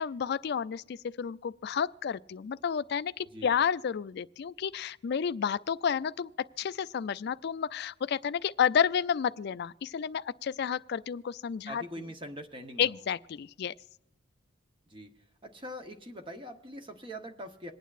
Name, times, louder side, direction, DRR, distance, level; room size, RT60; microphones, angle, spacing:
voice 1, 0.0-11.8 12.8-13.7, left 7 dB, 50° left, 0.3 m, -31 dB
voice 2, 11.7-13.0 14.9-15.1 15.4-17.7, equal, 25° right, 0.8 m, -43 dB
27.0 x 9.2 x 2.4 m
head